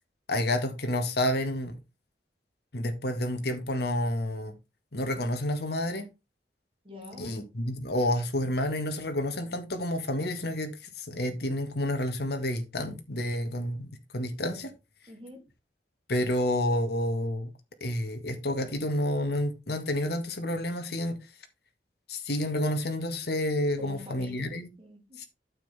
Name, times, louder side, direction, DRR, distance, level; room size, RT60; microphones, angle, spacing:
voice 1, 0.3-1.8 2.7-4.6 4.9-6.1 7.2-14.7 16.1-17.5 17.8-21.2 22.1-24.7 25.2-25.3, left 1 dB, 65° left, 1.8 m, -29 dB
voice 2, 6.8-7.5 15.1-15.4 23.8-25.2, left 2 dB, 30° right, 2.6 m, -46 dB
9.0 x 7.7 x 3.5 m
head